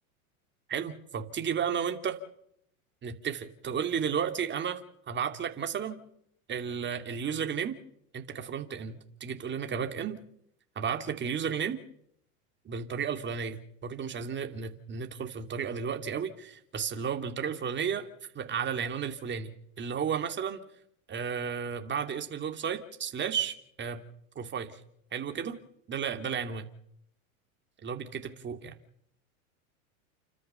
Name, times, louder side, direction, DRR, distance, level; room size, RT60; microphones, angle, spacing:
voice 1, 0.7-2.2 3.0-4.8 5.1-6.0 6.5-7.8 8.1-10.2 10.8-11.8 12.7-18.1 18.3-19.5 19.8-20.6 21.1-24.0 24.4-24.7 25.1-25.6 25.9-26.7 27.8-28.7, right 7 dB, 25° right, 6 dB, 2.6 m, -33 dB
30.0 x 13.0 x 6.9 m, 0.72 s
supercardioid pair, 115°, 43 cm